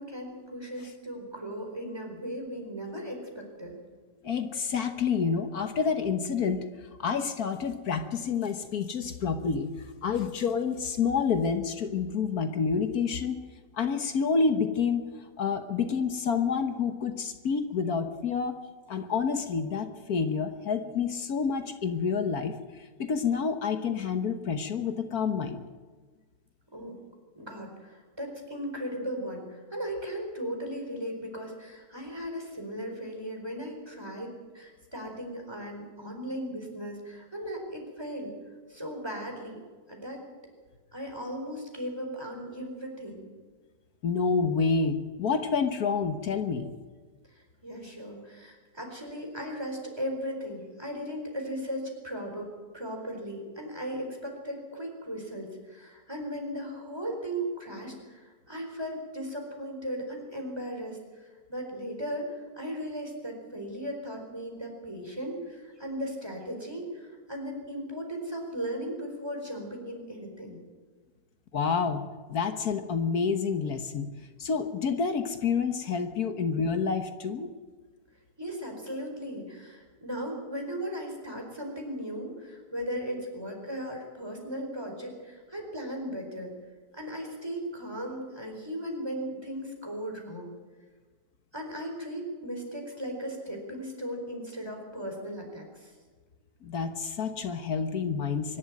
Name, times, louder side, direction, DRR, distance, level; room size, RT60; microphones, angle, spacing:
voice 1, 0.0-3.7 26.7-27.0 27.3-38.3 38.7-39.6 39.9-40.2 40.9-43.3 47.6-61.0 61.5-62.3 62.6-70.6 78.4-86.5 86.9-90.5 91.5-95.9, equal, 15° right, 1 dB, 4.5 m, -37 dB
voice 2, 4.2-6.6 7.0-9.7 10.0-13.3 13.7-15.1 15.4-18.5 18.9-22.5 23.0-25.6 44.0-46.7 71.5-74.1 74.4-77.5 96.6-98.6, left 5 dB, 75° left, 8 dB, 1.7 m, -28 dB
24.0 x 12.0 x 9.5 m, 1.4 s
omnidirectional pair, 1.7 m